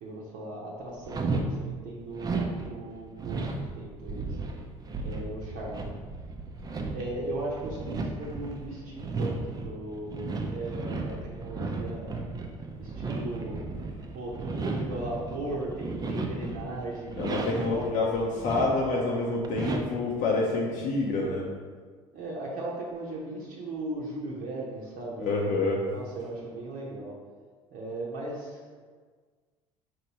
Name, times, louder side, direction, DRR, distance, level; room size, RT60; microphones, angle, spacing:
voice 1, 0.0-3.5 3.7-4.4 5.0-5.9 6.9-12.2 12.8-13.6 14.1-18.0 21.0-21.5 22.1-25.5 25.9-27.1 27.7-28.8, right 2 dB, 55° right, -4 dB, 0.8 m, -37 dB
sound 1, 1.0-1.5 2.1-17.9 18.2-19.0 19.4-20.1, right 3 dB, 20° right, 0.5 m, -34 dB
voice 2, 17.2-21.4 25.2-25.8, left 3 dB, 50° left, -2 dB, 0.6 m, -27 dB
4.2 x 3.0 x 2.9 m, 1.5 s
figure-of-eight pair, 65°, 17 cm